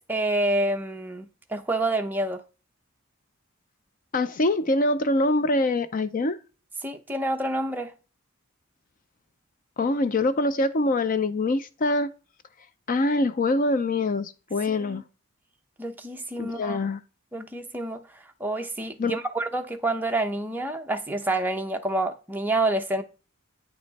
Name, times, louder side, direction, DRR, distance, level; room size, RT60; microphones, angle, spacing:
voice 1, 0.1-2.4 6.8-7.9 14.7-15.0 15.8-16.8 17.3-18.1 18.4-23.0, right 2 dB, 10° right, 0.8 m, -28 dB
voice 2, 4.1-6.4 9.8-12.1 12.9-15.0 16.4-17.0 19.0-19.2, left 2 dB, 40° left, 0.5 m, -24 dB
9.8 x 5.1 x 4.1 m
head